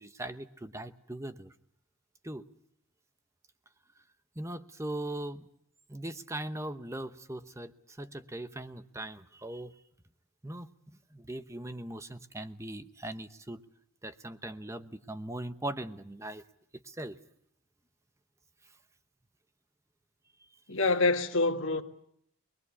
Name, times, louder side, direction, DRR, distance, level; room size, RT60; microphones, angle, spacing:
voice 1, 0.0-1.5 2.2-2.4 4.4-5.5 5.9-9.7 10.4-13.6 14.0-16.4 16.7-17.2, right 1 dB, 15° right, 0.9 m, -40 dB
voice 2, 20.7-21.8, left 3 dB, 60° left, 1.8 m, -26 dB
25.0 x 21.0 x 8.4 m
head